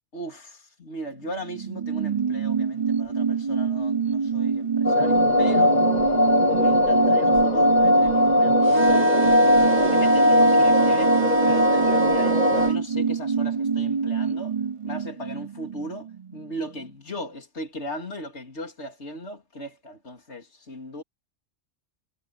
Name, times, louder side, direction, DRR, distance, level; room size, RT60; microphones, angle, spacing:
voice 1, 0.1-5.8 6.5-14.5 14.8-21.0, equal, 70° left, 3.5 m, -37 dB
sound 1, 1.2-16.5 16.8-16.9, right 6 dB, 40° right, 0.5 m, -26 dB
sound 2, 4.8-12.7, left 1 dB, 40° left, 1.8 m, -19 dB
sound 3, 8.6-12.8, right 5 dB, 20° right, 1.8 m, -28 dB
omnidirectional pair, 1.2 m